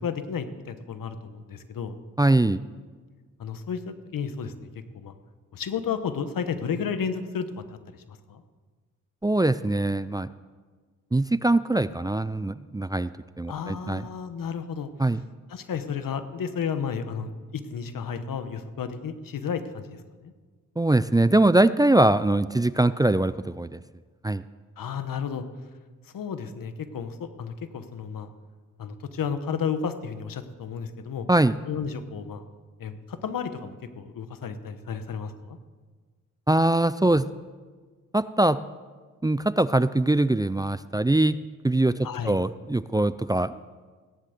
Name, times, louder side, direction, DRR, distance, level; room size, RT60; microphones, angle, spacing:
voice 1, 0.0-2.0 3.4-4.7 4.9-5.1 5.5-8.4 13.5-14.9 15.5-20.3 24.8-25.4 26.1-28.3 28.8-31.3 31.7-32.4 32.8-35.6 42.0-42.4, left 6 dB, 80° left, 10 dB, 1.2 m, -32 dB
voice 2, 2.2-2.6 9.2-10.3 11.1-13.1 13.4-14.1 15.0-15.2 20.8-23.8 24.2-24.4 31.3-31.6 36.5-37.3 38.1-38.6 39.2-41.4 41.6-43.5, right 2 dB, 10° right, 15 dB, 0.4 m, -22 dB
16.5 x 10.5 x 6.6 m, 1.5 s
cardioid pair, 60°, 33 cm